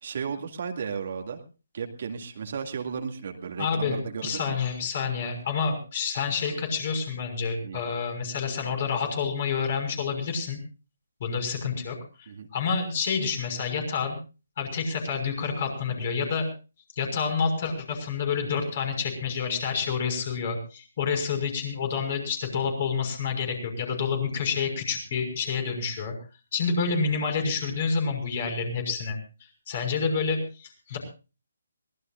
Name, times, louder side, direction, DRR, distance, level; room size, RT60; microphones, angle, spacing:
voice 1, 0.0-1.4 1.7-4.6 7.6-7.8 12.3-12.5, right 6 dB, 50° right, 4 dB, 2.2 m, -34 dB
voice 2, 3.6-10.6 11.2-14.2 14.6-16.5 17.0-26.1 26.5-31.0, left 5 dB, 40° left, 5 dB, 5.9 m, -28 dB
23.5 x 18.5 x 2.5 m, 0.34 s
figure-of-eight pair, 145°, 0 cm